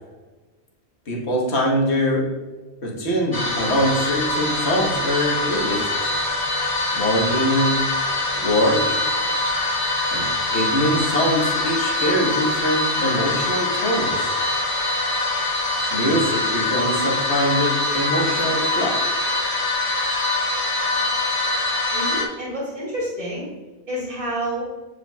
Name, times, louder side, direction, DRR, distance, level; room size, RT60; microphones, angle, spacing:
voice 1, 1.1-2.3 2.8-5.9 6.9-7.8 8.4-8.9 10.1-14.4 15.9-19.0, equal, 70° left, -2 dB, 1.6 m, -23 dB
sound 1, 3.3-22.2, left 2 dB, 25° left, 0.7 m, -23 dB
voice 2, 21.9-23.5 23.9-24.7, right 1 dB, 40° right, -6 dB, 2.1 m, -28 dB
8.3 x 5.0 x 2.3 m, 1.2 s
omnidirectional pair, 1.2 m